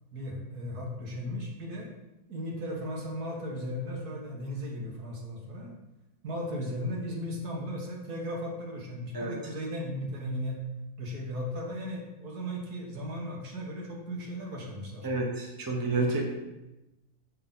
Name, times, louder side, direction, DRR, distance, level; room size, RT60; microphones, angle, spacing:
voice 1, 0.1-1.9 2.3-5.7 6.2-10.6 11.0-15.1, equal, 80° right, -1 dB, 1.9 m, -36 dB
voice 2, 15.0-16.3, right 2 dB, 15° right, 0 dB, 0.9 m, -29 dB
6.4 x 6.0 x 3.8 m, 0.99 s
omnidirectional pair, 1.6 m